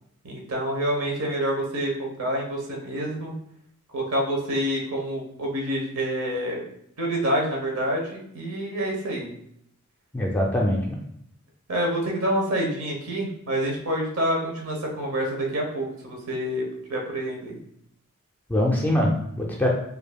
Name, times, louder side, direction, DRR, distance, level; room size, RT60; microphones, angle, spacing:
voice 1, 0.2-3.3 3.9-6.6 7.0-9.3 11.7-17.6, equal, 75° right, -1 dB, 1.0 m, -27 dB
voice 2, 10.1-10.9 18.5-19.7, left 1 dB, 10° left, -1 dB, 0.4 m, -23 dB
4.6 x 2.7 x 2.3 m, 0.72 s
head